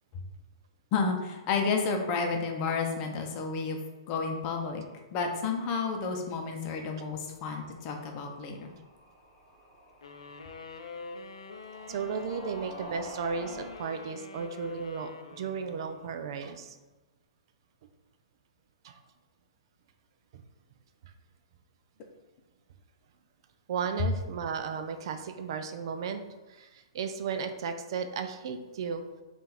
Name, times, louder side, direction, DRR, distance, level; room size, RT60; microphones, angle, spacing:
voice 1, 0.9-3.8 4.1-4.8 5.1-8.7, left 4 dB, 35° left, 3 dB, 0.6 m, -31 dB
sound 1, 7.2-13.8, right 2 dB, ahead, 1.2 m, -49 dB
sound 2, 10.0-16.4, left 4 dB, 85° left, 0.4 m, -45 dB
voice 2, 11.9-16.8 18.8-19.0 23.7-26.2 26.5-29.0, right 6 dB, 60° right, 8 dB, 0.4 m, -35 dB
3.7 x 2.5 x 4.2 m, 1.2 s
hypercardioid pair, 130°, 3 cm